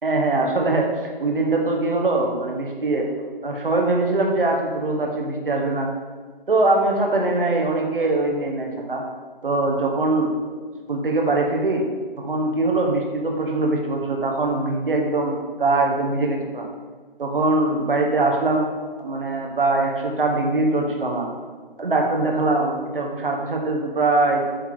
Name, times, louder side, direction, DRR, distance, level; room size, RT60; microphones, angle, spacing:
voice 1, 0.0-0.9 1.2-3.1 3.4-5.9 6.5-9.0 9.4-10.3 10.9-11.9 12.2-16.7 17.2-18.7 19.0-21.3 21.8-24.4, right 2 dB, 65° right, 1 dB, 1.4 m, -22 dB
8.2 x 3.3 x 4.0 m, 1.5 s
figure-of-eight pair, 165°, 29 cm